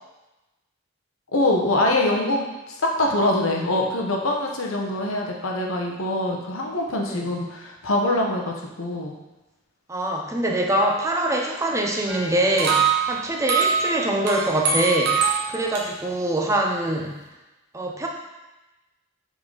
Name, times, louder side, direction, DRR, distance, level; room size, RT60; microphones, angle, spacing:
voice 1, 1.3-9.2, left 1 dB, 90° left, 0 dB, 1.0 m, -24 dB
voice 2, 9.9-17.2 17.7-18.1, right 1 dB, 15° right, 0 dB, 0.5 m, -24 dB
sound 1, 12.1-15.8, right 6 dB, 55° right, 1.0 m, -24 dB
6.4 x 3.9 x 3.9 m, 1.0 s
head